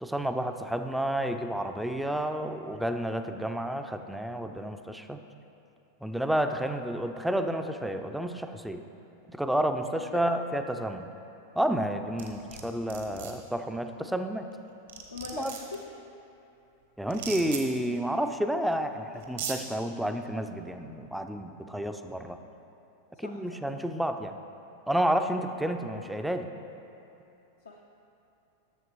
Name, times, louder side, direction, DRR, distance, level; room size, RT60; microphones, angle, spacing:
voice 1, 0.0-5.2 6.0-8.8 9.3-11.1 11.5-14.5 15.3-15.5 17.0-22.4 23.2-24.4 24.9-26.5, right 1 dB, 5° right, 7 dB, 0.4 m, -30 dB
voice 2, 9.8-10.2 15.1-16.0 23.2-23.6 27.6-27.8, left 4 dB, 75° left, 0 dB, 0.5 m, -41 dB
sound 1, 12.2-12.6 12.9-13.3 14.5-14.6 14.9-15.8 17.1-17.6 18.7-18.8 19.2-19.6, right 7 dB, 60° right, 1.0 m, -37 dB
11.0 x 7.1 x 3.0 m, 2.8 s
figure-of-eight pair, 90°, 0 cm